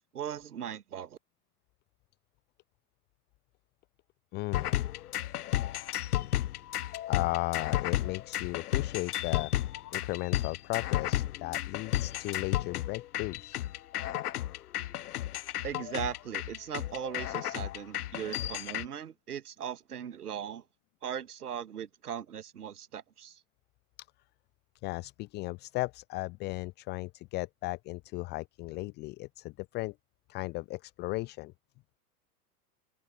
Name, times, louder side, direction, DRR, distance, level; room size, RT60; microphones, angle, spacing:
voice 1, 0.1-1.2 15.6-20.6 21.0-23.4, right 8 dB, 65° right, 1.6 m, -39 dB
voice 2, 4.3-4.7 7.1-13.6 24.8-29.9 30.3-31.5, left 21 dB, 20° left, 0.6 m, -36 dB
sound 1, 4.5-18.9, left 13 dB, 70° left, 0.5 m, -33 dB
figure-of-eight pair, 90°, 48 cm